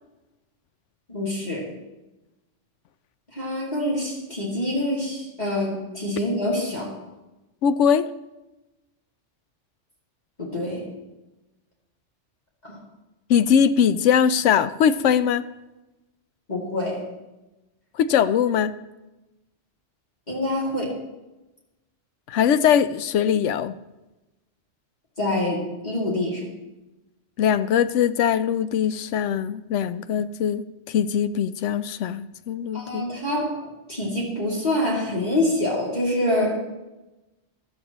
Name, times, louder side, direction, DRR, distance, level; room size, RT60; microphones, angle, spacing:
voice 1, 1.1-1.7 3.3-7.0 10.4-10.9 12.6-12.8 16.5-17.0 20.3-21.0 25.2-26.5 32.7-36.6, left 1 dB, 35° left, -5 dB, 2.8 m, -26 dB
voice 2, 7.6-8.1 13.3-15.4 18.0-18.7 22.3-23.7 27.4-33.0, left 8 dB, 80° left, 13 dB, 0.9 m, -21 dB
15.0 x 12.5 x 3.0 m, 1.0 s
omnidirectional pair, 1.2 m